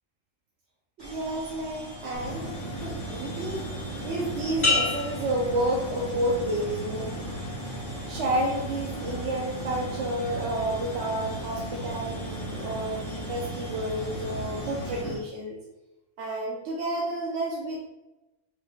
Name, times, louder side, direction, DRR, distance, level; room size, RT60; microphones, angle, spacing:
sound 1, 1.0-15.0, equal, 20° right, 1.5 m, -43 dB
voice 1, 1.0-7.1 8.1-15.6 16.2-17.9, right 1 dB, 75° right, -3 dB, 1.0 m, -30 dB
sound 2, 2.1-15.1, right 1 dB, 90° left, 1.6 m, -36 dB
sound 3, 4.6-6.4 6.9-7.4, left 3 dB, 30° left, 0.7 m, -29 dB
4.8 x 4.3 x 2.2 m, 1.0 s
omnidirectional pair, 1.2 m